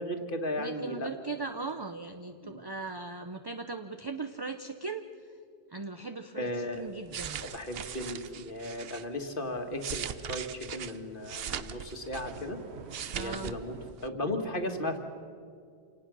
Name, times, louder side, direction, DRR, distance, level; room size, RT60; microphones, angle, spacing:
voice 1, 0.0-1.1 2.4-2.6 6.3-6.9 7.4-12.6 13.1-15.0, left 1 dB, 55° left, 6 dB, 1.9 m, -36 dB
voice 2, 0.6-5.0 5.7-7.4 13.1-13.6, right 3 dB, 25° right, 8 dB, 0.6 m, -38 dB
sound 1, 6.9-9.1 9.6-12.5 12.8-13.6 13.8-14.1, right 8 dB, 70° right, 0.9 m, -39 dB
Thunder / Rain, 8.6-13.9, right 4 dB, 90° right, 1.5 m, -52 dB
27.0 x 18.5 x 6.2 m, 2.3 s
omnidirectional pair, 1.1 m